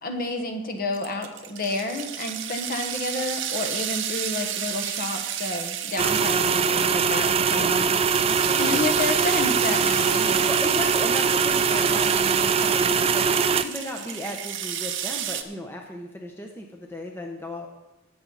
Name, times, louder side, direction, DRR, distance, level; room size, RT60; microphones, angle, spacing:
voice 1, 0.0-7.9 8.6-10.5, left 2 dB, 40° left, 5 dB, 1.3 m, -30 dB
sound 1, 0.9-15.4, right 10 dB, 55° right, 0.8 m, -33 dB
sound 2, 6.0-13.6, right 6 dB, 25° right, 0.3 m, -22 dB
voice 2, 7.5-7.9 8.2-8.8 10.5-17.7, left 1 dB, 10° left, 1 dB, 0.8 m, -35 dB
18.5 x 7.2 x 4.1 m, 1.0 s
head